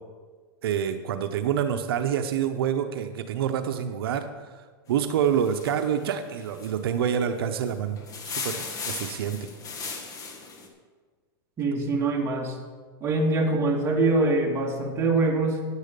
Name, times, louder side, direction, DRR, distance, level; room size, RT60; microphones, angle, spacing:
voice 1, 0.6-4.3 4.9-8.0 8.2-9.5, right 8 dB, 85° right, 8 dB, 0.7 m, -27 dB
sound 1, 4.9-10.7, left 4 dB, 30° left, 1.5 m, -37 dB
voice 2, 11.6-12.6 13.0-15.7, right 2 dB, 20° right, -1 dB, 1.8 m, -24 dB
9.8 x 8.3 x 5.2 m, 1.5 s
supercardioid pair, 135°, 12 cm